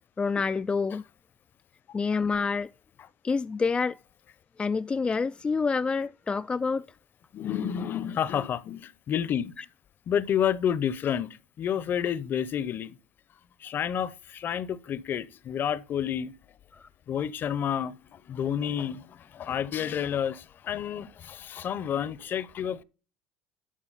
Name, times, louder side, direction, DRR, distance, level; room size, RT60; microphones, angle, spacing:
voice 1, 0.2-1.0 1.9-2.7 3.2-4.0 4.6-6.9 9.6-9.7 16.7-16.9, left 4 dB, 20° left, 0.3 m, -27 dB
voice 2, 7.3-9.5 10.1-11.3 11.6-13.0 13.6-16.3 17.1-22.8, left 9 dB, 45° left, 0.8 m, -30 dB
11.0 x 6.2 x 4.1 m
hypercardioid pair, 75°, 5 cm